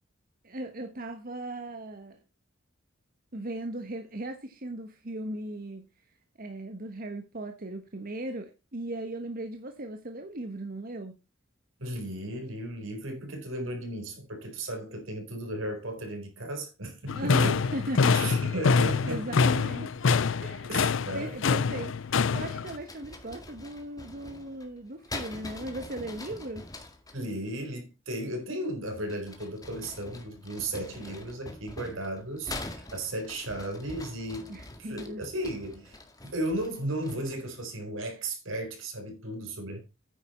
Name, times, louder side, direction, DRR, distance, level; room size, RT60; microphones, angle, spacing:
voice 1, 0.4-2.2 3.3-5.9 6.4-11.1 17.1-18.3 19.1-20.1 20.4-20.7 21.1-21.9 22.3-26.7 34.5-35.2, right 1 dB, 45° right, 1.3 m, -37 dB
voice 2, 11.8-17.6 18.1-19.3 20.7-21.3 27.1-34.5 34.8-36.0 36.2-39.8, right 1 dB, 80° right, 4.3 m, -35 dB
sound 1, 17.1-22.8, left 5 dB, 70° left, 0.5 m, -25 dB
sound 2, 22.4-27.2 28.9-37.5, left 2 dB, 20° left, 1.8 m, -44 dB
9.7 x 8.5 x 4.3 m
head